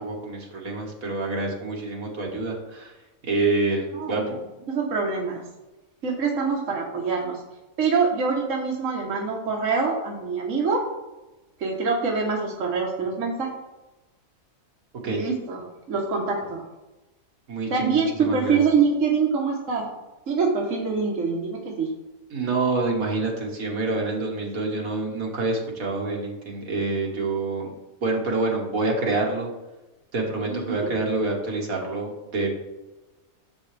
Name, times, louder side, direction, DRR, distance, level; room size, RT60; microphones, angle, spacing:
voice 1, 0.0-2.9 3.3-4.4 15.0-15.2 17.5-18.6 22.3-27.7 28.0-29.5 30.1-32.5, right 3 dB, 85° right, -1 dB, 2.1 m, -27 dB
voice 2, 3.9-4.3 4.7-5.4 6.0-7.4 7.8-10.9 11.6-13.5 15.0-15.6 15.9-16.6 17.7-19.9 20.3-21.9 30.5-30.9, right 5 dB, 65° right, -1 dB, 1.6 m, -25 dB
11.0 x 7.0 x 3.4 m, 1.1 s
omnidirectional pair, 1.4 m